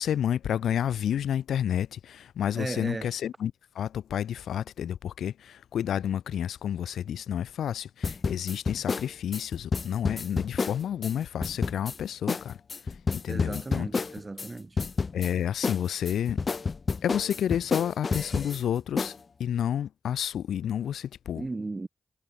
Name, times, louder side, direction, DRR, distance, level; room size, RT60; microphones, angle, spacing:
voice 1, 0.0-12.6 13.1-13.9 15.1-16.4 17.0-19.1 19.4-21.4, left 9 dB, 85° left, 1.3 m, -30 dB
voice 2, 2.5-3.1 13.3-14.8 21.4-21.9, right 3 dB, 35° right, 6.1 m, -35 dB
sound 1, 8.0-11.1 11.4-12.0 12.3-12.4 12.7-14.5 14.8-15.3 15.6-18.6 19.0-19.2, left 4 dB, 55° left, 2.1 m, -29 dB
supercardioid pair, 40°, 0 cm